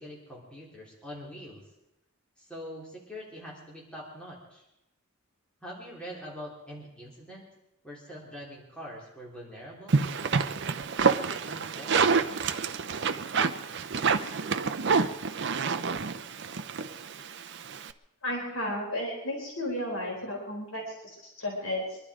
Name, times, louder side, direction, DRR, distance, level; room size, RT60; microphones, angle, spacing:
voice 1, 0.0-1.6 2.4-4.6 5.6-7.5 7.8-10.0 11.0-12.2, equal, 5° left, -4 dB, 3.3 m, -44 dB
sound 1, 9.9-17.9, right 5 dB, 50° right, 0.7 m, -28 dB
voice 2, 18.2-22.0, left 1 dB, 65° left, -1 dB, 4.0 m, -33 dB
24.5 x 11.5 x 4.9 m, 0.89 s
head